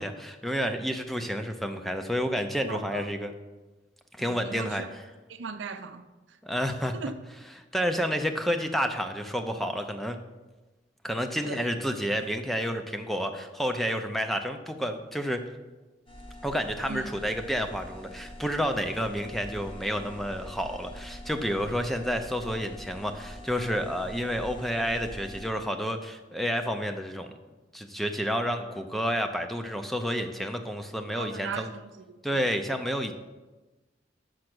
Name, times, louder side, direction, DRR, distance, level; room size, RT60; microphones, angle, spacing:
voice 1, 0.0-3.3 4.2-4.8 6.4-6.9 7.7-10.2 11.0-15.4 16.4-27.3 27.7-31.7 32.2-33.1, equal, ahead, 0.4 m, -30 dB
voice 2, 2.7-3.1 4.2-4.9 5.3-6.4 6.9-7.1 11.4-11.7 16.9-17.1 31.1-32.5, right 5 dB, 80° right, 0.5 m, -38 dB
sound 1, 16.1-25.5, left 1 dB, 30° left, 0.9 m, -44 dB
6.4 x 5.8 x 6.0 m
head